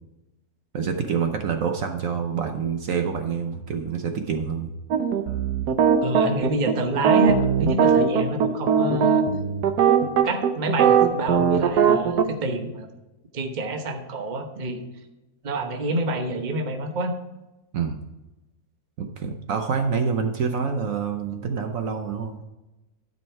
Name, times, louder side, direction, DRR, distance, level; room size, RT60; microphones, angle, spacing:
voice 1, 0.7-4.8 17.7-18.0 19.0-22.4, right 6 dB, 65° right, 5 dB, 1.1 m, -27 dB
sound 1, 4.9-12.2, right 7 dB, 90° right, 1.3 m, -19 dB
voice 2, 6.0-9.2 10.2-12.9 13.3-14.8 15.4-17.1, right 1 dB, 35° right, 5 dB, 0.9 m, -27 dB
12.0 x 5.3 x 4.6 m, 1.0 s
omnidirectional pair, 1.6 m